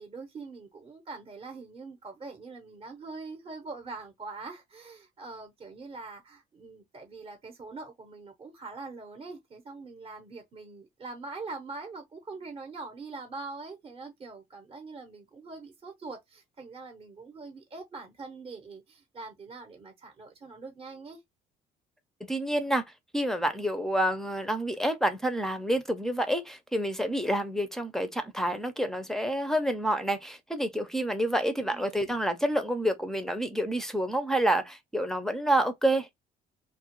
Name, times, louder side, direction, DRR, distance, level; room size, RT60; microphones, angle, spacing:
voice 1, 0.0-21.2 31.6-32.2, right 3 dB, 35° right, 0.7 m, -43 dB
voice 2, 22.3-22.8 23.1-36.1, right 1 dB, 5° left, 0.4 m, -28 dB
2.3 x 2.1 x 2.9 m
cardioid pair, 110°, 17 cm